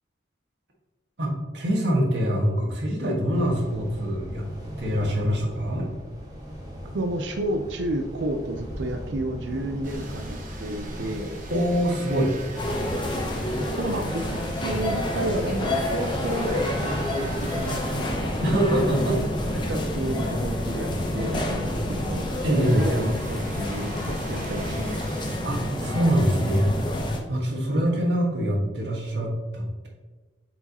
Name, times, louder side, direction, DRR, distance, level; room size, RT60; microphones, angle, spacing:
voice 1, 1.2-4.5 4.8-5.9 11.5-12.3 18.4-19.2 22.4-22.8 25.4-26.8 27.3-29.9, equal, 65° right, -1 dB, 1.5 m, -24 dB
sound 1, 3.3-22.4, equal, 20° right, 1.3 m, -39 dB
voice 2, 6.9-11.3 13.6-18.5 19.7-22.3 22.7-25.1, right 1 dB, 85° right, 6 dB, 0.5 m, -31 dB
sound 2, 9.8-19.7 21.9-25.4, right 3 dB, 45° right, 1.1 m, -44 dB
sound 3, 12.6-27.2, left 1 dB, 25° left, 0.8 m, -28 dB
7.8 x 4.6 x 2.9 m, 1.2 s
head